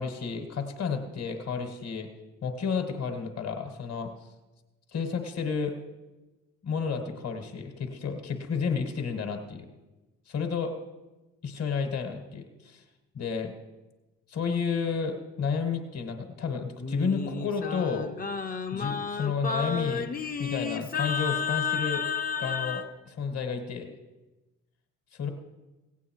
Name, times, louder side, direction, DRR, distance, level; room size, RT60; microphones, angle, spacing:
voice 1, 0.0-2.1 2.4-4.3 4.9-5.8 6.6-9.7 10.3-10.8 11.4-12.8 13.1-13.6 14.3-18.1 18.7-20.1 20.4-22.0 22.4-23.9 25.1-25.3, left 5 dB, 45° left, 5 dB, 1.6 m, -31 dB
Singing, 16.8-22.9, left 6 dB, 25° left, 0.9 m, -31 dB
16.0 x 8.3 x 4.6 m, 1.1 s
hypercardioid pair, 55°, 34 cm